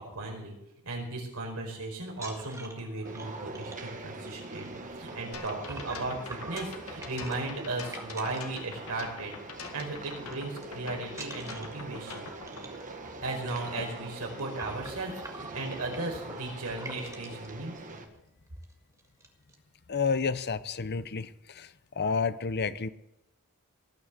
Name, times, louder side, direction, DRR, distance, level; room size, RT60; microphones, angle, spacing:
voice 1, 0.1-0.6 0.8-9.4 9.7-12.3 13.2-18.0, right 2 dB, 80° right, 0 dB, 4.8 m, -36 dB
sound 1, 2.1-9.2 9.5-9.8 10.1-10.6 11.1-17.5 18.1-18.2 18.6-18.7 19.0-19.5, right 2 dB, 15° right, 1.7 m, -47 dB
sound 2, 3.0-18.0, right 2 dB, 35° right, 1.6 m, -43 dB
sound 3, 5.3-12.6, left 4 dB, 75° left, 2.1 m, -44 dB
voice 2, 19.9-21.7 22.0-22.9, left 5 dB, 50° left, 14 dB, 0.7 m, -30 dB
19.0 x 6.3 x 8.1 m, 0.88 s
head